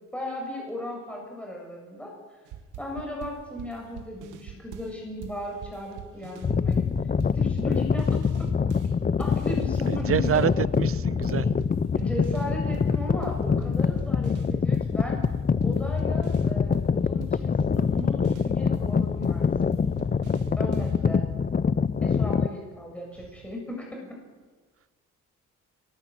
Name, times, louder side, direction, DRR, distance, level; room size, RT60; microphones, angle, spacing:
voice 1, 0.1-2.1 2.8-6.9 7.3-8.5 9.2-10.4 12.0-15.2 15.6-19.7 20.6-21.3 22.0-24.2, left 1 dB, 5° left, 7.3 m, -36 dB
sound 1, 2.5-5.0 5.2-8.9 9.2-12.9 13.2-21.0, right 9 dB, 90° right, 2.4 m, -43 dB
sound 2, 6.4-22.5, left 6 dB, 30° left, 0.7 m, -25 dB
sound 3, 9.3-20.3, right 3 dB, 20° right, 3.4 m, -51 dB
voice 2, 9.9-10.5 10.8-11.5, right 9 dB, 50° right, 0.7 m, -26 dB
22.5 x 21.0 x 9.0 m
cardioid pair, 90°, 30 cm